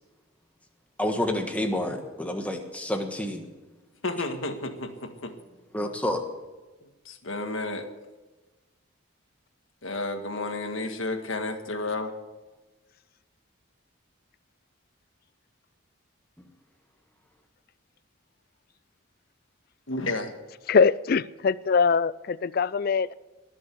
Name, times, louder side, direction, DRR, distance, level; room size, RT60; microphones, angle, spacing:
voice 1, 1.0-3.4 5.7-6.2 16.4-16.5, left 1 dB, 5° left, 4 dB, 1.5 m, -29 dB
voice 2, 4.0-5.3 6.8-7.9 9.8-12.1 19.9-20.3, left 2 dB, 80° left, 6 dB, 1.7 m, -32 dB
voice 3, 20.7-23.1, left 5 dB, 45° left, 20 dB, 0.4 m, -22 dB
20.5 x 7.0 x 8.4 m, 1.2 s
head